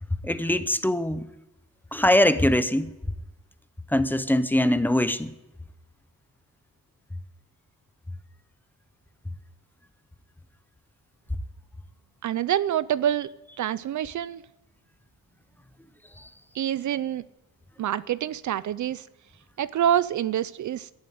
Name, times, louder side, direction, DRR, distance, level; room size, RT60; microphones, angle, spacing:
voice 1, 0.2-1.2 1.9-2.9 3.9-5.3, left 1 dB, 5° left, 0.5 m, -22 dB
voice 2, 12.2-13.3 13.6-14.4 16.5-17.2 17.8-19.1 19.6-20.9, right 10 dB, 55° right, 0.5 m, -26 dB
13.0 x 11.0 x 9.4 m
wide cardioid pair, 175°, 34 cm